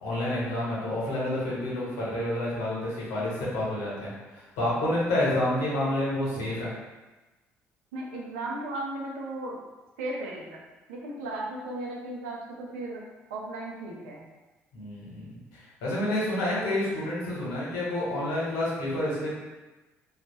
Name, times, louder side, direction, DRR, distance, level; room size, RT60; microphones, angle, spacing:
voice 1, 0.0-6.7 14.7-19.3, left 1 dB, 70° left, -6 dB, 1.1 m, -29 dB
voice 2, 7.9-9.6 10.0-10.6 10.9-13.0 13.3-14.3, right 2 dB, 75° right, -3 dB, 0.6 m, -36 dB
3.1 x 2.4 x 3.1 m, 1.1 s
hypercardioid pair, 50°, 7 cm